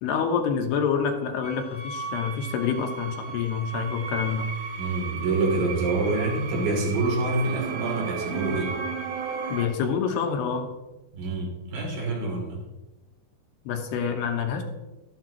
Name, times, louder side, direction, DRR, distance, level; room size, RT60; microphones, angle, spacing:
voice 1, 0.0-4.5 9.5-10.7 13.6-14.6, left 6 dB, 75° left, 3 dB, 3.1 m, -27 dB
sound 1, 1.4-9.7, right 5 dB, 70° right, 2.0 m, -34 dB
voice 2, 4.8-8.7 11.1-12.6, right 2 dB, 90° right, -2 dB, 5.4 m, -26 dB
13.0 x 11.5 x 3.0 m, 1.0 s
omnidirectional pair, 5.0 m